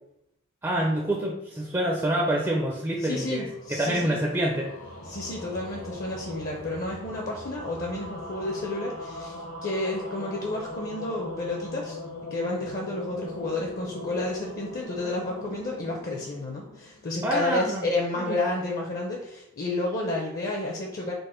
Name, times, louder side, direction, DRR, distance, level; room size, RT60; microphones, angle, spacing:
voice 1, 0.6-4.7 17.2-17.9 18.2-18.4, right 1 dB, 15° right, -1 dB, 0.4 m, -27 dB
sound 1, 2.8-17.2, left 2 dB, 65° left, 1.1 m, -41 dB
voice 2, 3.0-4.2 5.1-12.0 12.3-21.1, left 2 dB, 40° left, -1 dB, 0.6 m, -31 dB
5.2 x 2.1 x 4.3 m, 0.82 s
head